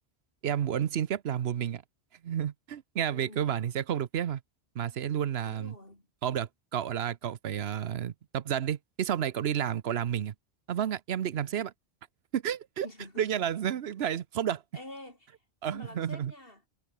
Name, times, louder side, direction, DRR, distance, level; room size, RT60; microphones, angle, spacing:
voice 1, 0.4-1.8 2.2-4.4 4.7-5.7 6.2-10.3 10.7-11.7 12.3-12.9 13.2-14.6 15.6-16.3, right 9 dB, 70° right, 1.0 m, -31 dB
voice 2, 3.1-3.5 5.4-6.1 12.8-13.3 14.7-15.4 15.7-16.6, left 1 dB, 60° left, 6.1 m, -47 dB
omnidirectional pair, 1.1 m